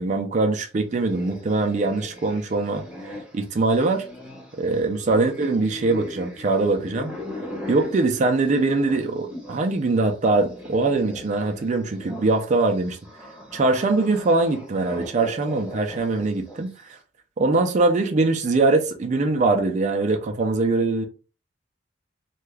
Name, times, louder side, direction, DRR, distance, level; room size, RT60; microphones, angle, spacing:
voice 1, 0.0-2.8 3.3-4.0 4.6-7.1 7.7-13.0 13.5-17.0 17.4-21.0, right 3 dB, 40° right, 0.4 m, -22 dB
sound 1, 0.9-9.7 10.0-16.8, left 1 dB, 5° right, 0.8 m, -39 dB
2.7 x 2.3 x 3.3 m
head